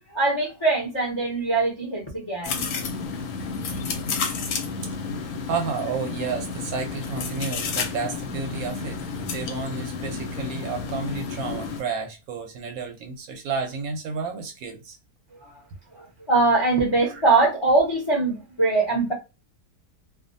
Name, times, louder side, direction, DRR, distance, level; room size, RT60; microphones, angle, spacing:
voice 1, 0.1-2.6 15.3-15.6 15.9-19.1, right 3 dB, 40° left, 0.4 m, -22 dB
sound 1, 2.4-11.8, left 5 dB, 70° left, 1.0 m, -31 dB
voice 2, 5.1-9.0 9.3-15.0 17.0-17.2, right 5 dB, 70° right, 0.9 m, -31 dB
2.5 x 2.2 x 2.5 m
omnidirectional pair, 1.7 m